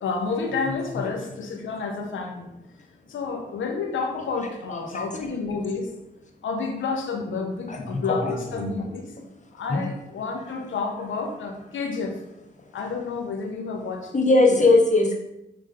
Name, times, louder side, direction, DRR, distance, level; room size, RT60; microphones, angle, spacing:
voice 1, 0.0-2.5 3.1-5.9 6.4-9.1 9.5-12.2 12.7-14.7, left 4 dB, 75° left, 3 dB, 1.1 m, -30 dB
voice 2, 7.7-8.9 9.7-9.8 14.1-15.2, left 2 dB, 40° left, 1 dB, 1.4 m, -20 dB
5.7 x 3.6 x 5.1 m, 0.89 s
supercardioid pair, 45°, 20 cm